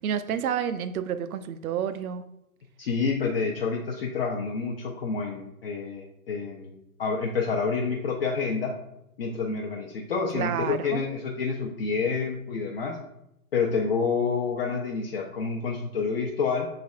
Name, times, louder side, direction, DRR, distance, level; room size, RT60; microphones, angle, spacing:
voice 1, 0.0-2.2 10.3-11.0, right 8 dB, 70° right, 12 dB, 0.5 m, -29 dB
voice 2, 2.8-8.7 9.2-13.0 13.5-16.7, left 5 dB, 45° left, -1 dB, 0.5 m, -28 dB
6.1 x 3.3 x 2.4 m, 0.85 s
hypercardioid pair, 135°, 44 cm